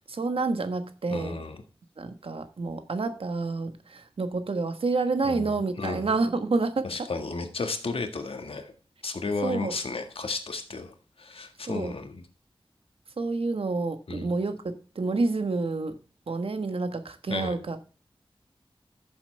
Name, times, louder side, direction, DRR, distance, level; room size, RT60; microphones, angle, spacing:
voice 1, 0.1-1.3 2.0-7.1 9.4-9.7 11.7-11.9 13.2-16.0 16.3-17.8, right 3 dB, 85° right, 8 dB, 1.4 m, -29 dB
voice 2, 1.1-1.6 5.2-6.1 6.8-8.7 9.0-12.2 14.1-14.3 17.3-17.6, left 3 dB, 85° left, 6 dB, 1.7 m, -33 dB
13.0 x 7.2 x 3.4 m, 0.37 s
wide cardioid pair, 75°, 9 cm